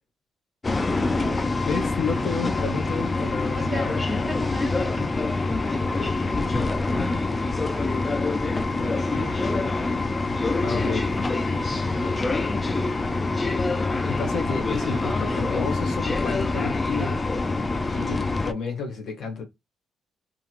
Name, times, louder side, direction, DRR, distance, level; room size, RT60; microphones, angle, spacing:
sound 1, 0.6-18.5, left 3 dB, 25° left, 0.4 m, -25 dB
voice 1, 1.6-4.2 10.6-11.1 14.0-17.2 17.9-19.4, left 5 dB, 65° left, 1.0 m, -31 dB
voice 2, 3.5-8.1 8.8-9.8 11.3-12.2 12.5-13.4 14.7-15.4, equal, 5° left, 1.3 m, -40 dB
2.7 x 2.5 x 2.9 m
cardioid pair, 90°, 0 cm